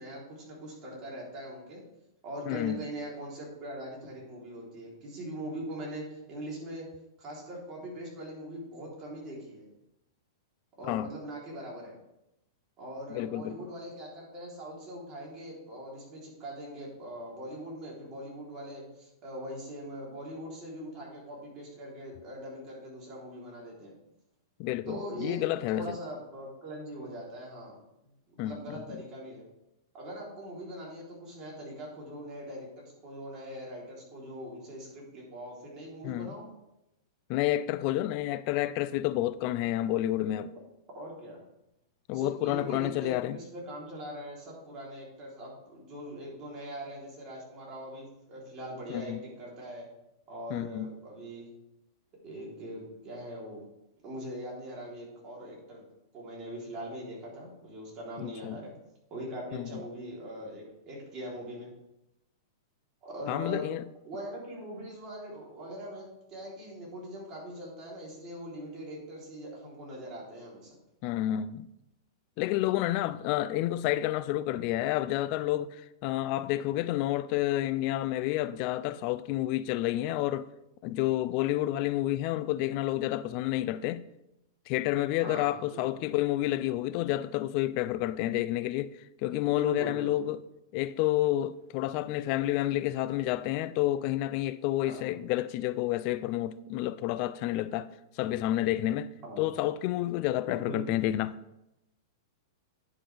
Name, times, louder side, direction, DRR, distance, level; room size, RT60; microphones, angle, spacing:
voice 1, 0.0-1.8 2.2-6.9 7.2-9.7 10.8-11.9 12.8-23.9 24.9-25.4 25.7-27.8 28.4-29.4 29.9-36.5 40.3-40.4 40.9-41.4 42.1-49.9 50.3-51.5 52.2-53.6 54.0-55.8 56.1-58.7 59.1-61.7 63.0-63.7 64.0-70.8 85.2-86.0 89.6-90.3 94.9-95.1 99.2-99.4 100.6-101.0, right 1 dB, 30° right, 3.5 m, -41 dB
voice 2, 2.5-2.8 10.8-11.1 13.1-13.7 24.6-26.0 28.4-29.0 36.0-36.4 37.3-40.5 42.1-43.4 48.9-49.2 50.5-51.0 58.2-58.6 59.5-59.8 63.3-63.9 71.0-71.7 72.4-80.5 80.8-84.1 84.7-90.4 90.7-97.9 98.2-101.4, left 14 dB, 40° left, 0.4 m, -30 dB
9.9 x 7.3 x 3.4 m
hypercardioid pair, 145°, 2 cm